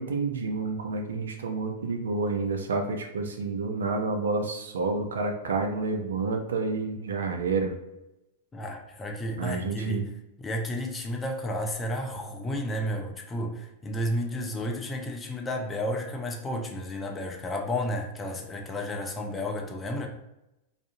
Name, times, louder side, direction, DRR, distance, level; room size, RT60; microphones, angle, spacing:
voice 1, 0.0-7.7 9.4-10.0, right 3 dB, 75° right, 0.4 m, -29 dB
voice 2, 8.5-10.1 10.4-20.1, left 1 dB, 20° left, 0.5 m, -32 dB
2.5 x 2.4 x 2.5 m
figure-of-eight pair, 100°, 0 cm